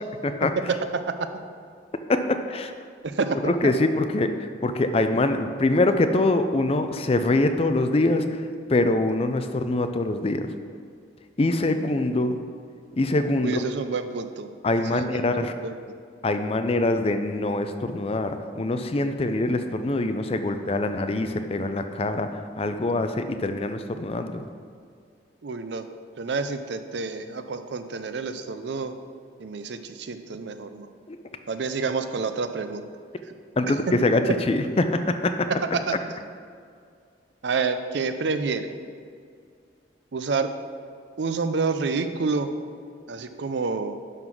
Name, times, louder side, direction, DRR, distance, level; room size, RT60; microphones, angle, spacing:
voice 1, 2.1-2.7 3.4-8.4 8.7-10.5 11.4-12.4 13.0-13.6 14.6-15.5 16.2-24.4 31.1-31.2 33.6-35.3, left 2 dB, 30° left, 8 dB, 0.4 m, -24 dB
voice 2, 3.0-3.7 13.4-14.5 14.9-15.2 15.6-15.7 25.4-25.9 26.2-28.9 29.4-30.9 31.5-32.8 35.7-36.0 37.4-38.7 40.1-40.5 41.2-42.5 43.1-44.0, right 4 dB, 70° right, 9 dB, 0.5 m, -28 dB
11.0 x 3.9 x 6.0 m, 2.2 s
head